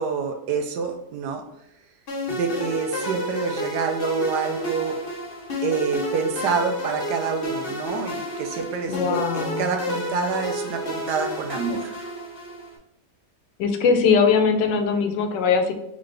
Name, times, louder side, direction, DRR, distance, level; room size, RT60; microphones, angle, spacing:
voice 1, 0.0-1.4 2.3-5.0 5.6-12.1, right 5 dB, 75° right, 5 dB, 1.2 m, -27 dB
sound 1, 2.1-12.7, left 1 dB, 45° left, 0.8 m, -31 dB
voice 2, 8.9-9.7 13.6-15.7, left 5 dB, 90° left, 6 dB, 1.3 m, -21 dB
3.9 x 3.7 x 3.2 m, 0.77 s
omnidirectional pair, 1.9 m